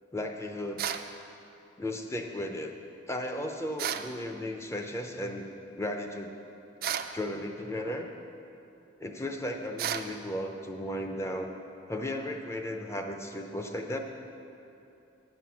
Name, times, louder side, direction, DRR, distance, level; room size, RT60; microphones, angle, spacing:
voice 1, 0.1-0.8 1.8-2.7 3.1-5.5 5.8-6.3 7.1-8.1 9.0-11.5 11.9-14.0, left 1 dB, 15° left, 4 dB, 0.6 m, -35 dB
sound 1, 0.8-1.1 3.8-4.1 6.8-7.2 9.8-10.1, right 9 dB, 50° right, 0.4 m, -32 dB
9.2 x 7.8 x 5.8 m, 2.8 s
head